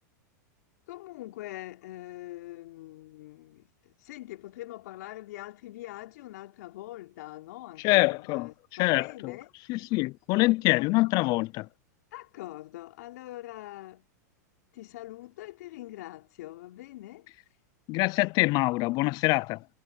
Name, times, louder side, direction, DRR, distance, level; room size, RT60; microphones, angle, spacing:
voice 1, 0.9-9.5 12.1-14.1 14.7-17.3, left 16 dB, 65° left, 3.8 m, -43 dB
voice 2, 7.8-8.5 8.8-9.3 9.7-11.7 17.9-19.6, left 23 dB, 45° left, 0.6 m, -25 dB
hypercardioid pair, 120°, 10 cm